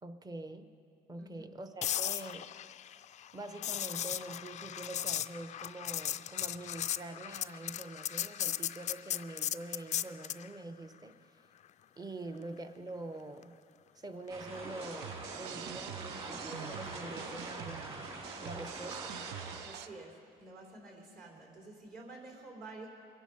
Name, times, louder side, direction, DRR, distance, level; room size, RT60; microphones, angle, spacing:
voice 1, 0.0-0.7 1.1-2.5 3.3-11.4 12.0-13.6 13.9-19.1, right 2 dB, 20° right, 9 dB, 0.9 m, -45 dB
voice 2, 1.2-1.5 19.6-22.9, right 2 dB, 55° right, 0 dB, 3.3 m, -50 dB
sound 1, 1.8-10.5 14.7-14.9, left 11 dB, 45° left, 0.4 m, -37 dB
sound 2, 14.3-19.6, right 2 dB, 35° right, 4.2 m, -44 dB
sound 3, 14.8-19.9, right 11 dB, 85° right, 0.5 m, -46 dB
22.0 x 10.0 x 5.5 m, 2.4 s
cardioid pair, 110°, 17 cm